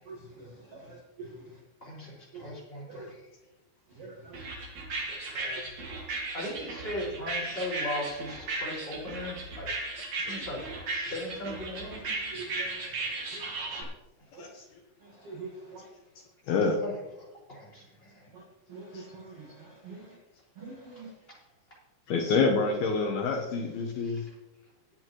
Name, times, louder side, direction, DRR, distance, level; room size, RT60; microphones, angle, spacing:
voice 1, 0.1-1.4 2.3-2.5 2.9-3.1 4.0-4.4 12.3-13.9 14.3-14.5 15.0-15.9 18.3-18.4 18.7-20.1 20.6-21.1, right 3 dB, 65° right, 0 dB, 1.4 m, -45 dB
voice 2, 1.8-3.0 5.1-5.6 6.3-9.7 10.3-10.6 10.9-12.3 16.8-16.9 17.5-17.8 24.0-24.2, left 1 dB, 10° left, -6 dB, 5.0 m, -38 dB
sound 1, 4.3-13.8, right 3 dB, 45° right, 2.5 m, -36 dB
voice 3, 16.5-16.8 18.9-19.1 22.1-24.2, left 4 dB, 70° left, 2 dB, 2.7 m, -27 dB
20.0 x 8.5 x 3.1 m, 0.99 s
omnidirectional pair, 5.1 m